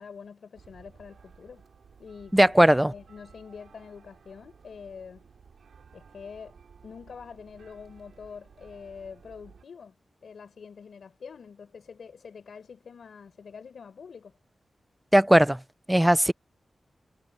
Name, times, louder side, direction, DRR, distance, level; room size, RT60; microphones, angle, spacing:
voice 1, 0.0-1.6 2.0-2.6 2.9-5.3 5.9-6.5 6.8-14.4, left 6 dB, 75° left, 4.6 m, -45 dB
sound 1, 0.5-9.6, right 6 dB, 80° right, 6.0 m, -55 dB
voice 2, 2.3-2.9 15.1-15.6 15.9-16.3, right 1 dB, 5° right, 0.4 m, -18 dB
wide cardioid pair, 155°, 0 cm